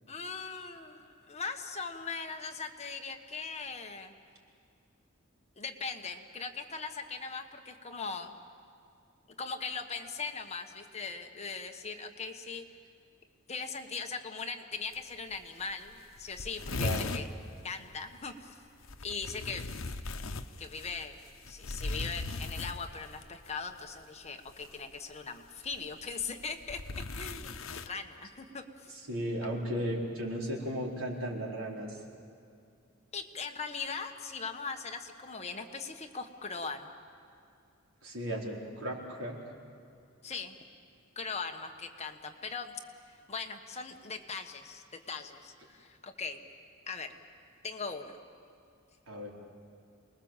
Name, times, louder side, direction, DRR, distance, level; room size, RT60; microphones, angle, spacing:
voice 1, 0.1-4.1 5.6-8.3 9.4-12.7 13.5-17.3 17.6-18.6 19.0-19.6 20.6-21.2 21.5-28.9 33.1-36.9 40.2-40.6 41.1-42.8 43.3-46.4 46.9-47.1 47.6-48.2, left 5 dB, 35° left, 5 dB, 1.3 m, -40 dB
sound 1, 14.9-15.0 15.3-15.4 15.7-15.8 16.0-17.3 18.8-23.2 24.5-24.8 25.6-27.9, left 3 dB, 80° left, 0.9 m, -38 dB
voice 2, 16.8-17.1 29.1-32.0 38.0-39.4 49.1-49.3, equal, 85° right, -2 dB, 4.4 m, -35 dB
28.0 x 20.5 x 7.4 m, 2.4 s
head